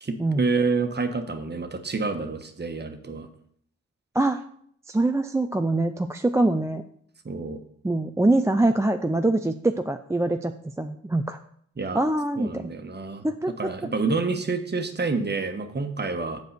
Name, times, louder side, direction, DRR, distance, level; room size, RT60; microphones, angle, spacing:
voice 1, 0.0-3.3 7.2-7.6 11.8-12.0 12.4-13.3 13.6-16.4, right 4 dB, 30° right, 7 dB, 1.3 m, -28 dB
voice 2, 4.9-6.8 7.8-11.4 11.9-12.7 13.2-13.5, right 2 dB, 10° right, 7 dB, 0.5 m, -24 dB
7.9 x 4.7 x 6.7 m, 0.65 s
supercardioid pair, 60°, 35 cm